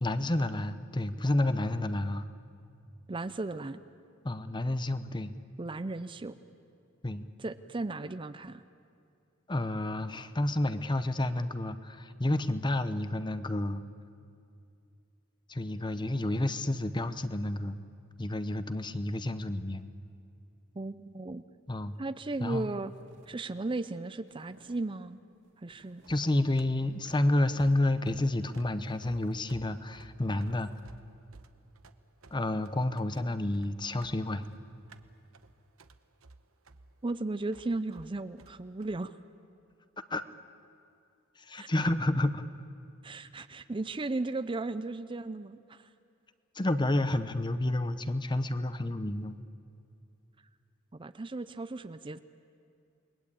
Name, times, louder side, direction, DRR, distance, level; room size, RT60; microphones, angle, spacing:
voice 1, 0.0-2.3 4.2-5.3 7.0-7.3 9.5-13.8 15.5-17.8 18.2-19.8 21.7-22.0 22.4-22.7 26.1-30.7 32.3-34.5 40.1-40.2 41.4-42.5 46.5-49.4, left 1 dB, 20° left, 12 dB, 0.8 m, -30 dB
voice 2, 3.1-3.8 5.6-6.4 7.4-8.6 20.7-21.4 22.0-22.9 23.3-25.2 25.6-26.0 37.0-39.1 41.5-41.7 43.0-45.9 50.9-52.2, right 2 dB, 25° right, 13 dB, 0.5 m, -36 dB
sound 1, 21.9-22.2 22.5-23.4 23.7-25.0 25.3-26.5 26.9-28.5 28.8-30.8, right 2 dB, 60° right, 2.8 m, -63 dB
sound 2, 25.9-39.0, right 3 dB, 80° right, 1.0 m, -56 dB
29.0 x 20.5 x 8.5 m, 2.5 s
head